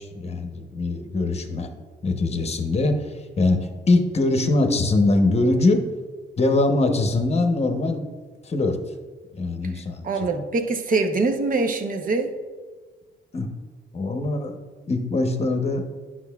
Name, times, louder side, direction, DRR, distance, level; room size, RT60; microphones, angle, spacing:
voice 1, 0.0-1.7 2.0-5.9 6.4-8.1 8.4-8.9 9.3-10.3 13.3-13.5 13.9-14.6 14.9-15.8, left 2 dB, 30° left, 6 dB, 0.9 m, -22 dB
voice 2, 10.0-12.3, right 3 dB, 45° right, 5 dB, 0.9 m, -23 dB
9.9 x 5.9 x 2.4 m, 1.4 s
cardioid pair, 90°, 20 cm